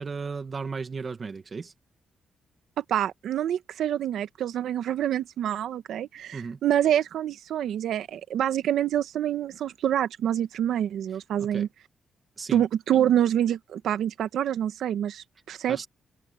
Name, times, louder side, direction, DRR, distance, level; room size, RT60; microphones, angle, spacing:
voice 1, 0.0-1.7 6.3-6.6 11.4-11.7 12.4-12.7 15.7-15.9, right 4 dB, 40° right, 2.0 m, -35 dB
voice 2, 2.8-11.7 12.5-15.9, right 10 dB, 80° right, 1.3 m, -26 dB
cardioid pair, 75°, 0 cm